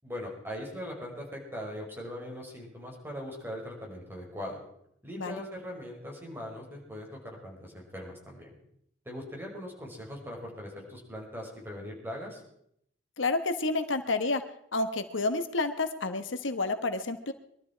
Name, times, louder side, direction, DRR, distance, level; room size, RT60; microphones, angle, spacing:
voice 1, 0.0-4.6 5.0-8.5 9.1-12.4, equal, 10° right, -2 dB, 5.5 m, -40 dB
voice 2, 13.2-14.4 14.7-17.3, left 3 dB, 90° left, 9 dB, 1.3 m, -29 dB
22.0 x 13.0 x 4.6 m, 0.72 s
head